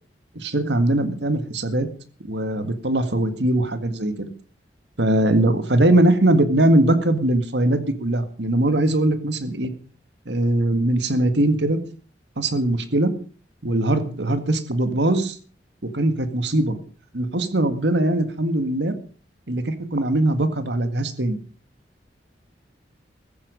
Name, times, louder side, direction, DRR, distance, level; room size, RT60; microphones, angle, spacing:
voice 1, 0.4-1.9 2.2-4.3 5.0-9.7 10.3-11.8 12.4-13.1 13.6-15.4 15.8-16.8 17.1-18.9 19.5-21.4, right 1 dB, 75° right, 10 dB, 1.9 m, -21 dB
15.0 x 14.5 x 5.3 m, 0.41 s
head